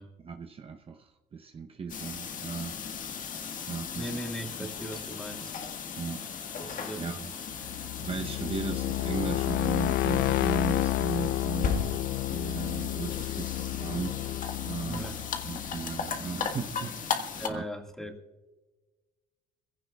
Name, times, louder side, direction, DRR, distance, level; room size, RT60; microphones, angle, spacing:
voice 1, 0.2-3.3 3.7-4.2 6.0-6.3 7.0-7.3 8.0-11.9 12.3-15.2 15.4-17.6, right 5 dB, 35° right, 5 dB, 0.8 m, -37 dB
sound 1, 1.9-17.5, left 6 dB, 50° left, 1.6 m, -37 dB
voice 2, 4.0-5.6 6.6-7.1 14.8-15.2 17.4-18.2, equal, 5° left, 4 dB, 1.8 m, -39 dB
sound 2, 7.6-16.4, left 15 dB, 70° left, 0.4 m, -31 dB
22.0 x 16.0 x 2.3 m, 1.3 s
cardioid pair, 110°, 17 cm